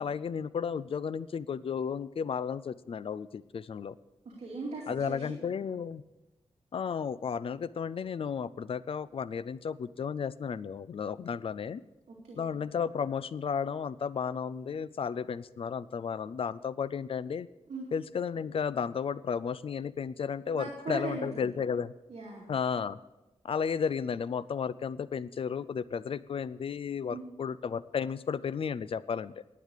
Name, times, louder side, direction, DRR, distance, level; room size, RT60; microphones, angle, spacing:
voice 1, 0.0-3.9 4.9-6.0 6.7-11.8 12.3-17.5 17.9-21.9 22.5-23.0 23.4-29.3, left 6 dB, 55° left, 17 dB, 0.4 m, -33 dB
voice 2, 4.2-5.4 12.1-12.5 17.7-17.9 20.5-21.5 22.1-22.5 27.1-27.2, right 3 dB, 70° right, -3 dB, 2.4 m, -39 dB
11.5 x 9.2 x 6.5 m, 1.0 s
wide cardioid pair, 140°, 12 cm